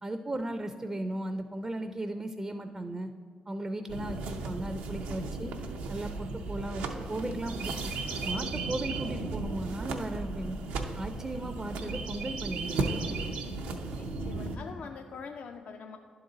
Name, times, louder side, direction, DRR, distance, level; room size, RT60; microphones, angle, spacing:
voice 1, 0.0-3.1 3.5-5.5 5.9-7.9 8.2-10.6 10.9-13.0, right 1 dB, 25° right, 8 dB, 0.4 m, -36 dB
sound 1, 3.9-14.6, right 3 dB, 90° right, 0.5 m, -35 dB
voice 2, 13.9-16.0, left 5 dB, 65° left, 4 dB, 0.4 m, -44 dB
11.0 x 3.9 x 3.9 m, 2.1 s
supercardioid pair, 55°, 3 cm